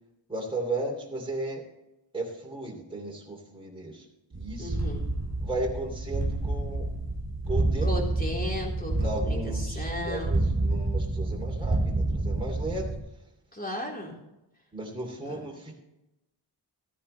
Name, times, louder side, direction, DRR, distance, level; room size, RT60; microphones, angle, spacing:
voice 1, 0.3-1.6 2.1-4.0 4.3-4.9 5.4-6.9 7.5-7.9 8.9-12.9 14.7-15.7, right 2 dB, 10° right, -2 dB, 2.9 m, -35 dB
sound 1, 4.3-13.0, right 2 dB, 30° right, 3.4 m, -29 dB
voice 2, 4.6-5.0 7.9-10.3 13.5-14.1 15.3-15.4, left 1 dB, 20° left, -1 dB, 3.7 m, -35 dB
14.5 x 9.8 x 3.3 m, 0.92 s
wide cardioid pair, 100°, 47 cm